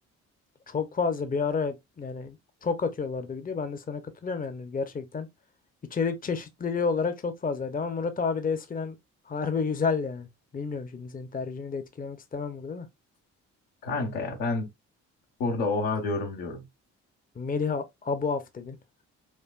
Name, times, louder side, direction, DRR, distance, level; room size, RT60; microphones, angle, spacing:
voice 1, 0.7-2.4 2.6-5.3 5.9-9.0 9.3-10.3 10.5-12.9 17.4-18.8, left 5 dB, 25° left, 0.7 m, -30 dB
voice 2, 13.8-14.7 15.4-16.6, left 3 dB, 85° left, 1.3 m, -29 dB
4.6 x 2.5 x 2.3 m
hypercardioid pair, 50°, 33 cm